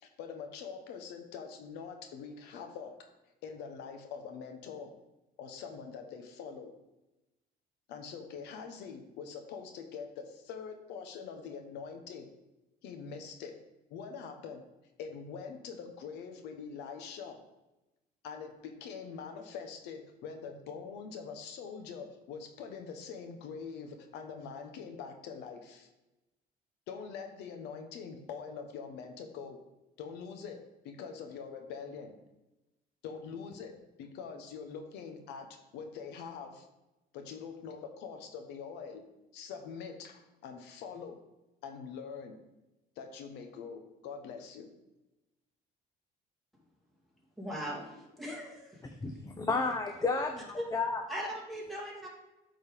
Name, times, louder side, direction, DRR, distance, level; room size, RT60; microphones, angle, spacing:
voice 1, 0.0-2.9 3.4-4.9 5.4-6.7 7.9-12.3 12.8-13.5 13.9-14.6 15.0-17.4 18.2-25.9 26.9-29.6 30.0-32.1 33.0-35.5 35.7-36.7 37.1-39.0 39.3-41.2 41.6-42.4 43.0-44.7, left 6 dB, 90° left, 1.0 m, -44 dB
voice 2, 47.4-48.8 50.6-50.7 51.1-52.1, equal, ahead, 2.3 m, -39 dB
voice 3, 49.0-51.0, left 3 dB, 20° left, 0.7 m, -32 dB
8.3 x 4.0 x 5.1 m
cardioid pair, 110°, 17 cm